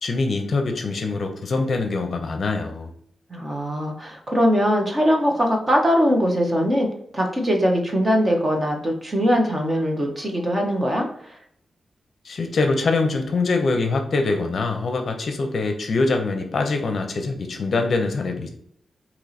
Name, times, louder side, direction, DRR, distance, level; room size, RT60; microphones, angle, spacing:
voice 1, 0.0-2.9 12.2-18.5, left 3 dB, 50° left, 5 dB, 0.6 m, -24 dB
voice 2, 3.3-11.1, equal, 20° right, 1 dB, 0.8 m, -21 dB
4.5 x 2.9 x 4.1 m, 0.67 s
wide cardioid pair, 175°, 0 cm